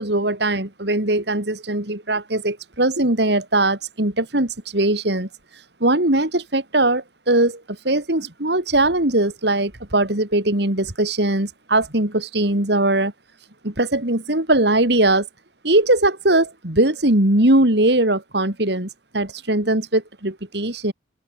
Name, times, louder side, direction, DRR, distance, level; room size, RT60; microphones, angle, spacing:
voice 1, 0.0-5.3 5.8-13.1 13.6-15.3 15.6-20.9, right 1 dB, 65° right, 3.3 m, -20 dB
open air
head